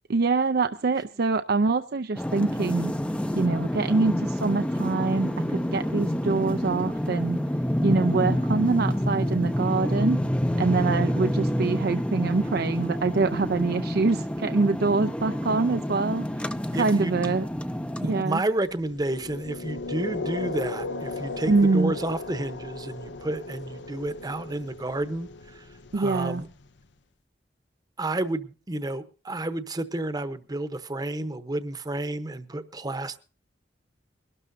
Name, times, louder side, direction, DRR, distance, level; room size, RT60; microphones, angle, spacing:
voice 1, 0.1-2.9 3.3-7.4 7.8-10.2 10.6-16.3 16.8-17.4 18.1-18.4 21.5-21.9 25.9-26.4, right 3 dB, 60° right, 9 dB, 0.5 m, -25 dB
sound 1, 2.2-18.2, equal, 5° left, 0.6 m, -28 dB
voice 2, 16.7-17.2 17.9-26.5 28.0-33.2, right 2 dB, 20° right, 11 dB, 0.9 m, -31 dB
sound 2, 18.7-26.8, left 3 dB, 75° left, 0.7 m, -36 dB
22.5 x 12.5 x 2.7 m, 0.37 s
head